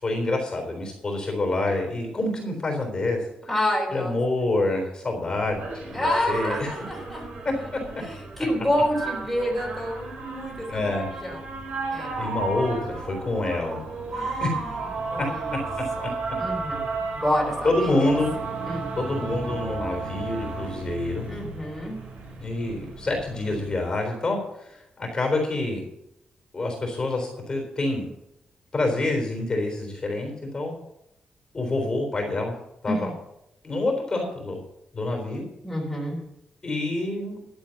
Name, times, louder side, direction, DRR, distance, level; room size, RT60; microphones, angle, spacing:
voice 1, 0.0-3.2 3.9-6.7 7.4-7.8 10.7-11.1 12.2-13.8 14.4-14.5 17.6-18.3 19.0-21.3 22.4-24.4 24.7-25.8 26.5-28.1 28.7-30.7 31.5-32.5 32.8-33.1 33.6-34.6 34.9-35.4 36.6-37.4, left 2 dB, 30° left, 2 dB, 3.8 m, -27 dB
voice 2, 3.5-4.1 5.9-7.2 8.0-11.4 11.9-12.1 14.1-14.6 15.1-15.6 16.4-16.8 17.2-18.1 18.6-18.9 21.2-22.0 32.9-33.1 35.6-36.2, left 1 dB, 5° left, -4 dB, 3.6 m, -28 dB
sound 1, 5.4-23.7, right 3 dB, 90° right, 5.2 m, -33 dB
12.0 x 7.9 x 7.1 m, 0.82 s
wide cardioid pair, 165°, 3 cm